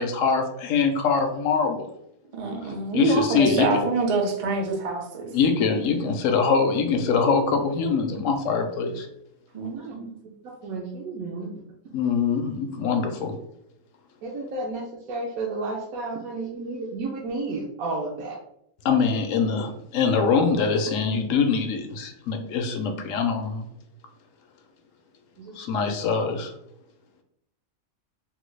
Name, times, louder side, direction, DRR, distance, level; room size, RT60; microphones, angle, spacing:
voice 1, 0.0-1.9 2.6-3.8 5.3-9.1 11.9-13.4 18.8-23.7 25.5-26.5, left 5 dB, 70° left, 5 dB, 0.9 m, -23 dB
voice 2, 2.3-5.3 9.5-10.1, right 3 dB, 50° right, 2 dB, 0.4 m, -26 dB
voice 3, 9.7-10.0 10.6-11.5 14.2-18.4 25.4-25.5, right 3 dB, 80° right, -2 dB, 1.1 m, -32 dB
3.5 x 2.2 x 3.2 m, 0.76 s
omnidirectional pair, 1.5 m